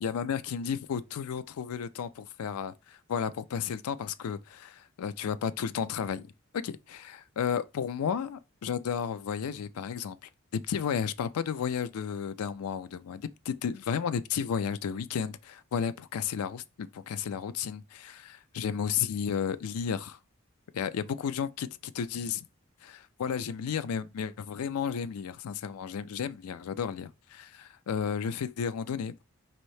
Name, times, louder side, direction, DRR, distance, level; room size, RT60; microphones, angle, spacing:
voice 1, 0.0-6.3 6.5-10.2 10.5-20.2 20.7-22.4 22.8-29.2, left 7 dB, 85° left, 0.4 m, -33 dB
4.2 x 2.7 x 3.1 m
head